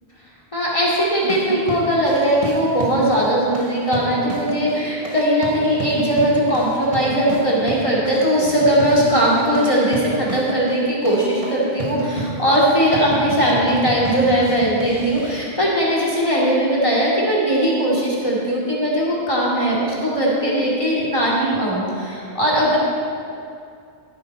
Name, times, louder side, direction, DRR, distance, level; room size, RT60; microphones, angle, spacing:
voice 1, 0.5-22.8, equal, 30° left, -5 dB, 2.9 m, -19 dB
sound 1, 1.2-15.4, right 2 dB, 30° right, 1.5 m, -30 dB
14.0 x 10.5 x 4.4 m, 2.4 s
omnidirectional pair, 1.1 m